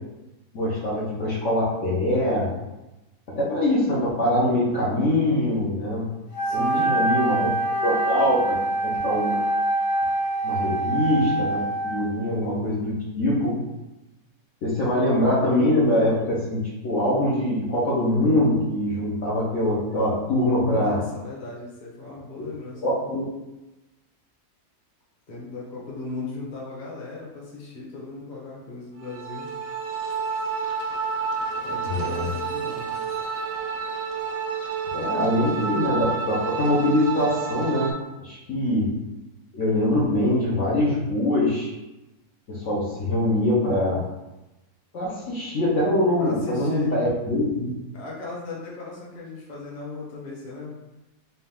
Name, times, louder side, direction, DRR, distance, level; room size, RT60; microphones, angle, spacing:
voice 1, 0.5-2.5 3.4-6.0 6.5-7.5 7.8-8.6 8.8-9.4 10.4-11.6 11.8-13.6 14.6-21.0 22.8-23.2 31.9-32.3 34.9-38.9 39.5-41.7 42.5-44.0 44.9-47.7, left 1 dB, 55° left, -7 dB, 1.1 m, -23 dB
Wind instrument woodwind instrument, 6.3-12.2, right 2 dB, 70° left, 1.9 m, -25 dB
voice 2, 6.4-6.9 10.7-10.8 20.8-23.0 25.3-29.5 31.6-32.8 46.2-46.9 47.9-50.7, left 3 dB, 30° left, -5 dB, 1.0 m, -36 dB
sound 1, 29.0-37.9, right 5 dB, 80° right, 1.2 m, -29 dB
4.2 x 2.5 x 3.6 m, 1.0 s
omnidirectional pair, 1.7 m